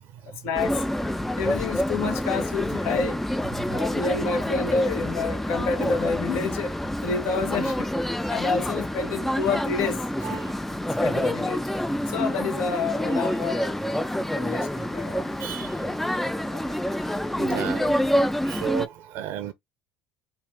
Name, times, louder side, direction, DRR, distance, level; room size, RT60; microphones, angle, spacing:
voice 1, 0.2-0.8 1.4-3.2 3.7-6.7 7.0-7.9 8.3-10.4 11.0-11.7 12.1-13.8 14.3-15.2 16.5-16.8 17.4-17.6, left 4 dB, 70° left, 1.3 m, -28 dB
sound 1, 0.5-18.9, left 1 dB, 5° left, 0.4 m, -27 dB
voice 2, 15.4-16.1 17.4-19.5, right 9 dB, 70° right, 0.7 m, -34 dB
4.7 x 2.5 x 3.6 m
supercardioid pair, 85°, 4 cm